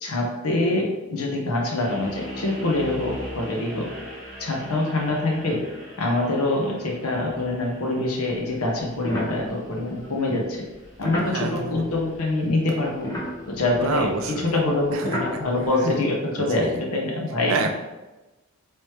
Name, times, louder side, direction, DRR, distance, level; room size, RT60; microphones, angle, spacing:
voice 1, 0.0-3.9 4.4-5.6 6.0-10.6 11.0-13.1 13.5-17.5, left 2 dB, 75° left, 0 dB, 0.8 m, -25 dB
sound 1, 1.8-12.9, equal, 50° left, 1.3 m, -42 dB
sound 2, 8.3-12.5 12.8-15.7, left 1 dB, 15° left, 0.7 m, -34 dB
voice 2, 11.3-11.8 13.8-14.6 14.9-15.0 16.3-16.8 17.5-17.7, right 4 dB, 65° right, 5 dB, 0.4 m, -28 dB
3.2 x 3.0 x 3.1 m, 1.1 s
head